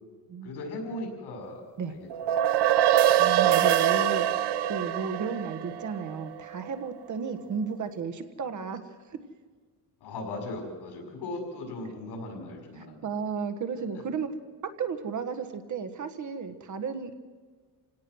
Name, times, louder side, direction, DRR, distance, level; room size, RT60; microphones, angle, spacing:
voice 1, 0.4-2.1 2.4-2.5 10.0-13.1 13.9-14.1, left 2 dB, 85° left, 2 dB, 6.2 m, -38 dB
sound 1, 2.1-6.7, right 11 dB, 85° right, 0.8 m, -24 dB
voice 2, 3.2-8.8 12.8-14.3 14.8-17.2, right 6 dB, 50° right, 9 dB, 1.5 m, -33 dB
28.0 x 17.5 x 6.3 m, 1.5 s
cardioid pair, 160°, 39 cm